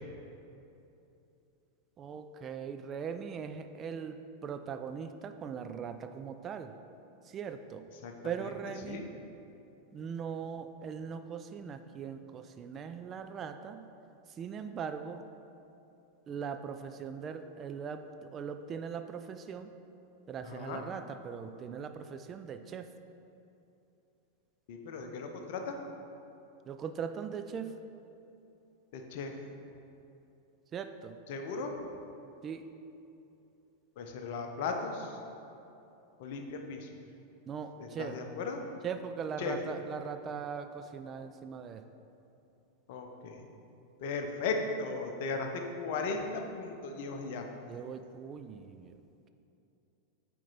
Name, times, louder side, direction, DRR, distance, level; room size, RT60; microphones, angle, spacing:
voice 1, 2.0-6.7 7.2-7.9 8.2-9.0 9.9-13.9 14.3-15.3 16.3-19.7 20.3-22.9 26.7-27.8 30.7-31.2 32.4-32.7 37.5-38.1 38.8-41.8 47.7-49.0, right 7 dB, 25° right, 8 dB, 0.3 m, -40 dB
voice 2, 20.4-20.8 24.7-25.8 28.9-29.3 31.3-31.8 34.0-35.2 36.2-36.9 37.8-38.6 39.4-39.6 42.9-43.4 44.0-47.5, left 4 dB, 50° left, 4 dB, 0.8 m, -36 dB
8.9 x 4.4 x 4.1 m, 2.8 s
figure-of-eight pair, 90°, 0 cm